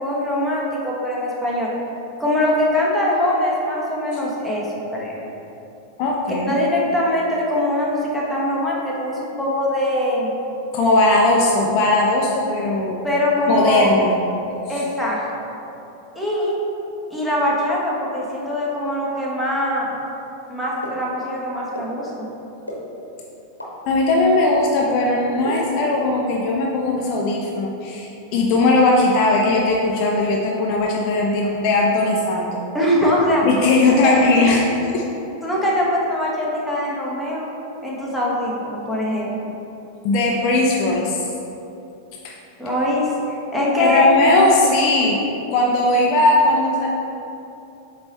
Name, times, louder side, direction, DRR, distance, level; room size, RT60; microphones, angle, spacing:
voice 1, 0.0-1.7 2.2-4.7 4.9-5.2 6.5-10.3 13.0-13.9 14.7-15.4 16.1-16.6 17.1-19.9 20.5-22.3 32.7-33.5 34.0-34.4 35.4-37.5 37.8-39.3 42.6-43.1 43.5-44.1, left 1 dB, ahead, -6 dB, 1.3 m, -22 dB
voice 2, 6.0-6.6 10.7-13.0 13.5-14.2 14.7-14.8 23.9-32.6 33.4-34.6 34.9-35.0 40.0-41.3 42.2-42.4 43.8-45.2 45.5-46.9, left 2 dB, 40° left, -2 dB, 0.6 m, -18 dB
sound 1, 20.8-20.9 21.7-21.8 22.7-22.8 23.6-23.7 24.5-24.6 25.4-25.5, left 1 dB, 85° left, 1.1 m, -30 dB
7.7 x 3.2 x 4.2 m, 2.9 s
figure-of-eight pair, 90°, 0 cm